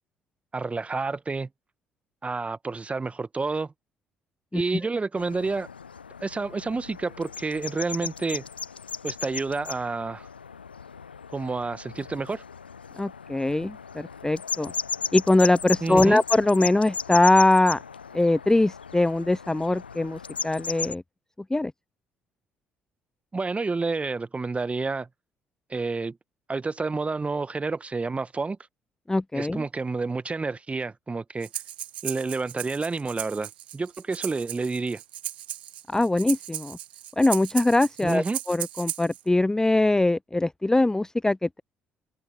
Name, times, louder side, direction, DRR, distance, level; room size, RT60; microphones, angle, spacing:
voice 1, 0.5-1.5 2.2-3.7 4.5-5.7 6.2-8.4 9.0-10.3 11.3-12.4 15.8-16.2 23.3-25.1 25.7-26.2 26.5-28.6 29.3-31.5 32.0-35.0 38.0-38.4, right 3 dB, 25° right, 1.6 m, -29 dB
sound 1, 5.2-20.9, left 6 dB, 85° left, 0.7 m, -36 dB
voice 2, 13.0-14.7 15.1-17.8 18.1-21.0 21.5-21.7 29.1-29.6 35.9-36.8 37.2-41.6, left 2 dB, 10° left, 0.5 m, -22 dB
Breathing, 31.4-39.2, right 12 dB, 80° right, 1.4 m, -36 dB
open air
figure-of-eight pair, 45°, 5 cm